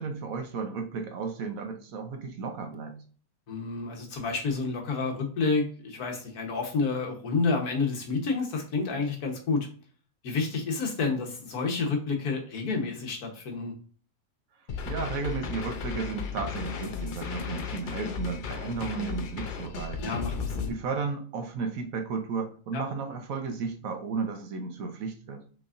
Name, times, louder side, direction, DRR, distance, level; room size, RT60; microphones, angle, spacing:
voice 1, 0.0-3.0 14.9-20.2 20.7-25.4, right 5 dB, 70° right, 5 dB, 1.2 m, -34 dB
voice 2, 3.5-9.7 10.2-13.7 20.0-20.7 22.7-22.8, left 4 dB, 80° left, 2 dB, 1.6 m, -29 dB
sound 1, 14.7-20.7, left 6 dB, 60° left, 0.5 m, -35 dB
6.0 x 3.5 x 2.5 m, 0.41 s
omnidirectional pair, 1.6 m